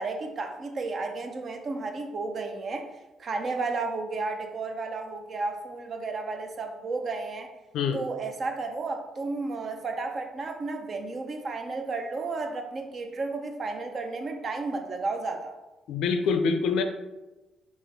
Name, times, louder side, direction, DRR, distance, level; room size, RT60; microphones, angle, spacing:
voice 1, 0.0-2.9 3.2-7.5 7.9-15.5, right 3 dB, 45° right, 5 dB, 0.6 m, -32 dB
voice 2, 15.9-16.8, left 5 dB, 80° left, 7 dB, 0.4 m, -25 dB
4.0 x 3.0 x 4.0 m, 1.1 s
cardioid pair, 85°, 0 cm